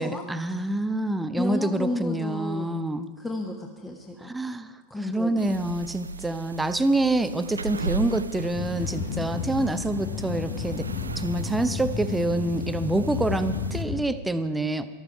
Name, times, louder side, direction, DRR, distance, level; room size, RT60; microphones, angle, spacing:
voice 1, 0.0-3.1 4.2-4.7 5.1-10.9 11.2-14.9, right 2 dB, 5° right, 11 dB, 0.7 m, -26 dB
voice 2, 1.4-2.7 3.2-4.3 4.9-5.5 8.0-8.2, left 2 dB, 10° left, 0 dB, 1.2 m, -32 dB
sound 1, 5.4-13.8, right 4 dB, 75° right, 0.3 m, -37 dB
sound 2, 8.5-14.0, left 6 dB, 45° left, 1.1 m, -32 dB
14.0 x 13.0 x 4.8 m, 1.5 s
figure-of-eight pair, 90°, 0 cm